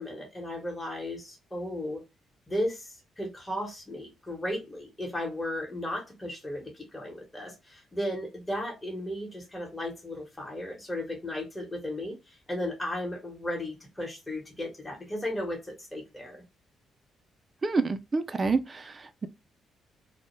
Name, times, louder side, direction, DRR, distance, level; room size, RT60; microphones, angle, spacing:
voice 1, 0.0-2.0 2.5-16.4, left 1 dB, 15° left, 1.0 m, -35 dB
voice 2, 17.6-19.3, right 4 dB, 30° right, 0.3 m, -28 dB
2.1 x 2.1 x 3.0 m
cardioid pair, 90°, 0 cm